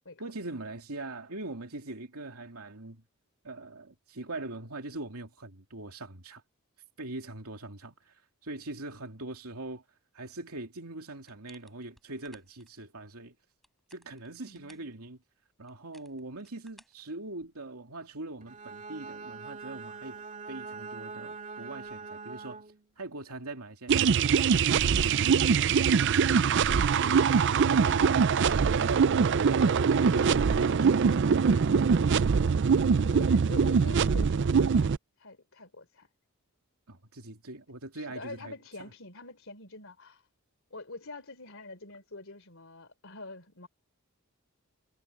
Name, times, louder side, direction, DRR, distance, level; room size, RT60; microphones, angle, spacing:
voice 1, 0.2-3.0 3.4-6.4 7.0-9.8 10.1-13.3 13.9-15.2 15.6-22.6 23.0-25.1 25.6-32.1 36.9-38.5 38.8-38.9, right 2 dB, 75° right, 2.8 m, -42 dB
sound 1, 11.2-12.7 13.5-14.9 15.7-17.7, equal, ahead, 6.6 m, -62 dB
voice 2, 14.4-14.9 33.0-36.1 37.9-40.2 40.7-43.7, left 2 dB, 60° left, 3.8 m, -46 dB
Bowed string instrument, 18.4-22.9, right 4 dB, 35° right, 2.6 m, -43 dB
sound 2, 23.9-35.0, right 6 dB, 55° right, 0.4 m, -23 dB
head